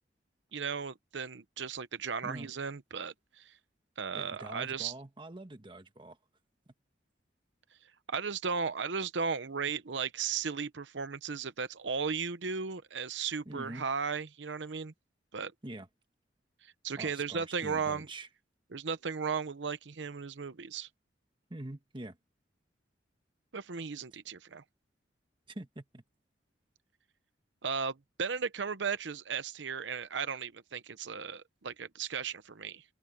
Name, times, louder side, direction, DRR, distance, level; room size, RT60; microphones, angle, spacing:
voice 1, 0.5-3.6 4.0-4.9 8.1-14.9 15.3-15.5 16.6-18.1 18.7-20.9 23.5-24.6 27.6-32.8, right 5 dB, 80° right, 0.8 m, -36 dB
voice 2, 4.1-6.2 6.7-6.8 13.4-13.9 15.6-15.9 17.0-18.3 21.5-22.2 25.5-26.0, right 1 dB, 30° right, 1.4 m, -45 dB
head